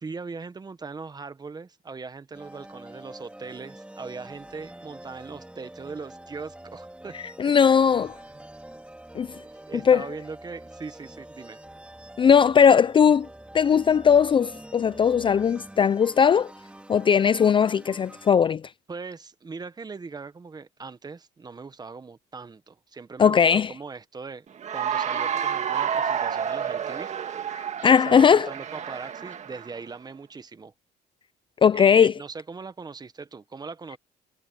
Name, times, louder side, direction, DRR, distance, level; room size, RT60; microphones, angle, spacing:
voice 1, 0.0-7.1 7.4-7.6 8.3-8.4 9.7-11.6 18.9-24.5 24.7-27.1 27.4-30.7 31.7-34.0, right 4 dB, 25° right, 1.3 m, -40 dB
sound 1, 2.3-18.3, right 1 dB, 5° right, 3.9 m, -45 dB
voice 2, 7.4-8.1 9.1-9.3 9.9-10.0 12.2-13.3 13.5-16.5 16.9-18.6 23.2-23.7 27.8-28.5 31.6-32.1, left 7 dB, 30° left, 0.4 m, -18 dB
Cheering / Applause, 24.6-29.8, right 8 dB, 45° right, 1.8 m, -29 dB
cardioid pair, 110°, 17 cm